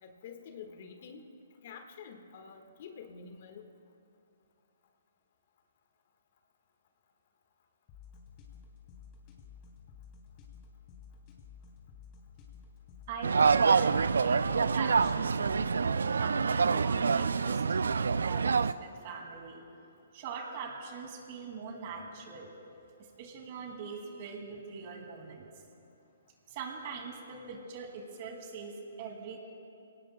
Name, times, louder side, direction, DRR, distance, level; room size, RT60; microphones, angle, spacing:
voice 1, 0.0-1.3 1.6-3.7, left 6 dB, 50° left, 5 dB, 1.4 m, -48 dB
sound 1, 7.9-15.9, left 6 dB, 30° left, 2.8 m, -53 dB
voice 2, 13.1-19.6 20.1-22.5 23.2-25.5 26.5-29.4, right 5 dB, 45° right, 2 dB, 2.3 m, -42 dB
sound 2, 13.2-18.7, right 5 dB, 75° right, 0.3 m, -26 dB
26.0 x 18.0 x 2.2 m, 2.6 s
figure-of-eight pair, 130°, 0 cm